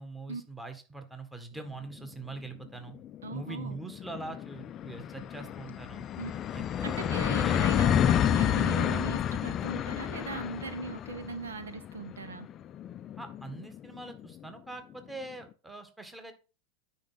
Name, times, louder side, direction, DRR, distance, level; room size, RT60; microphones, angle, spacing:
voice 1, 0.0-2.9 3.3-6.0 6.5-7.0 7.4-7.6 13.2-16.3, right 3 dB, 5° right, 1.6 m, -43 dB
sound 1, 2.1-2.2 2.5-2.6 2.9-14.3, left 9 dB, 30° left, 0.5 m, -30 dB
voice 2, 3.2-3.8 6.2-6.3 6.8-12.5, right 4 dB, 70° right, 0.9 m, -39 dB
9.6 x 5.4 x 5.5 m
figure-of-eight pair, 90°, 0 cm